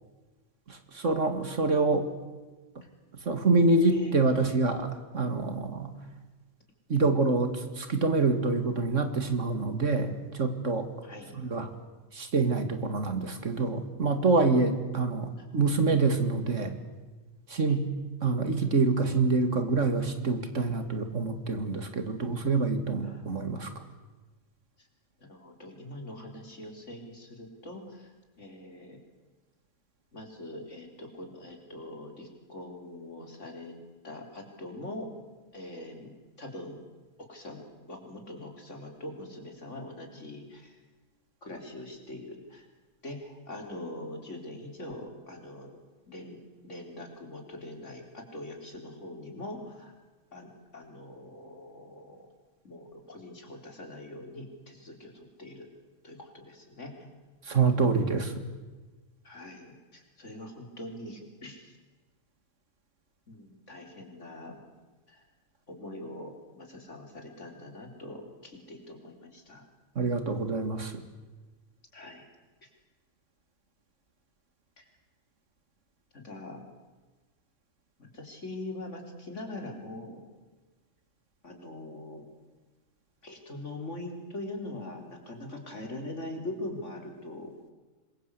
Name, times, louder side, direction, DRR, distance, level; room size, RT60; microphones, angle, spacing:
voice 1, 0.7-2.1 3.3-5.9 6.9-10.9 11.3-11.7 12.1-16.7 17.5-17.9 18.2-23.7 57.5-58.3 70.0-71.0, right 3 dB, 65° right, 8 dB, 2.5 m, -26 dB
voice 2, 11.0-11.4 15.4-15.6 17.7-17.8 23.0-23.3 24.8-24.9 25.2-29.0 30.1-33.7 34.0-35.1 35.5-36.1 36.4-36.8 37.2-37.6 37.9-40.8 41.4-42.7 43.0-45.8 46.1-46.4 46.6-49.9 50.3-52.2 52.6-55.7 56.0-57.1 59.2-61.8 63.3-64.6 65.1-65.2 65.7-69.6 71.9-72.3 72.6-72.7 74.8-74.9 76.1-76.6 78.0-80.2 81.4-82.3 83.2-87.7, left 1 dB, 60° left, 3 dB, 4.5 m, -43 dB
26.0 x 22.5 x 8.4 m, 1.2 s
omnidirectional pair, 1.4 m